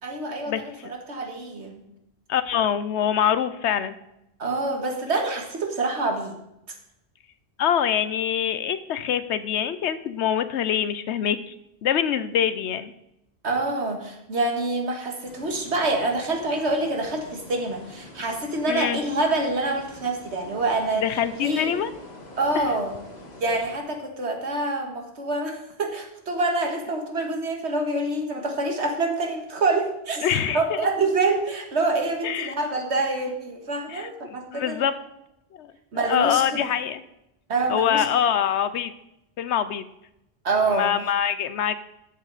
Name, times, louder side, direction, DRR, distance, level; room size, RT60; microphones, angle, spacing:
voice 1, 0.0-1.8 4.4-6.4 6.7-6.8 13.4-21.0 21.4-21.7 22.4-23.0 23.4-34.9 35.9-36.7 37.5-38.0 40.4-40.9, right 2 dB, 80° right, 3 dB, 1.9 m, -26 dB
voice 2, 2.3-4.0 7.6-11.5 11.8-12.9 18.7-19.0 21.0-21.9 22.5-22.7 30.2-30.8 32.2-32.6 33.9-35.0 35.5-35.7 36.1-37.0 37.7-38.9 39.4-39.8 40.7-41.7, left 9 dB, 90° left, 13 dB, 1.0 m, -24 dB
sound 1, 15.3-23.8, left 2 dB, 40° left, 1.6 m, -45 dB
13.0 x 8.1 x 4.1 m, 0.85 s
omnidirectional pair, 1.1 m